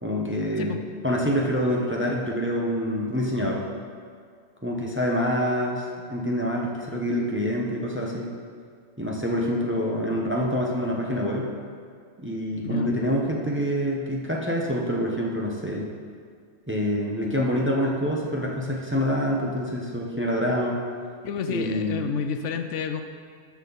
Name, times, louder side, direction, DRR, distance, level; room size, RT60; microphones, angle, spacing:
voice 1, 0.0-3.6 4.6-8.3 9.0-11.5 12.2-15.9 16.7-20.8 21.5-22.0, equal, 10° right, -2 dB, 0.8 m, -26 dB
voice 2, 21.2-23.0, left 6 dB, 75° left, 7 dB, 0.9 m, -30 dB
12.5 x 5.9 x 4.0 m, 2.1 s
omnidirectional pair, 1.3 m